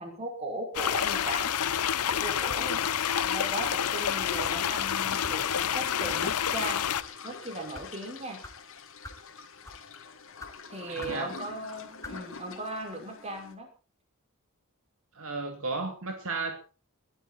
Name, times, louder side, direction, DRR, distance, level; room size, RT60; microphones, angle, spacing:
voice 1, 0.0-1.5 2.1-2.8 3.2-6.8 7.2-8.4 10.7-13.7, right 1 dB, 30° right, 3 dB, 5.7 m, -37 dB
sound 1, 0.7-7.0, left 9 dB, 80° left, 0.7 m, -28 dB
sound 2, 2.6-2.9 3.6-3.8 4.4-4.6 5.2-5.4 6.0-6.1 6.8-7.1 7.7-7.9 8.4-8.6 9.0-9.3 9.6-9.9 10.4-10.5 11.0-11.2 12.0-12.2, left 2 dB, 15° left, 2.7 m, -45 dB
sound 3, 5.1-13.5, left 5 dB, 65° left, 2.7 m, -45 dB
voice 2, 10.9-11.3 15.1-16.5, right 3 dB, 65° right, 4 dB, 2.8 m, -34 dB
21.5 x 11.5 x 4.3 m, 0.35 s
head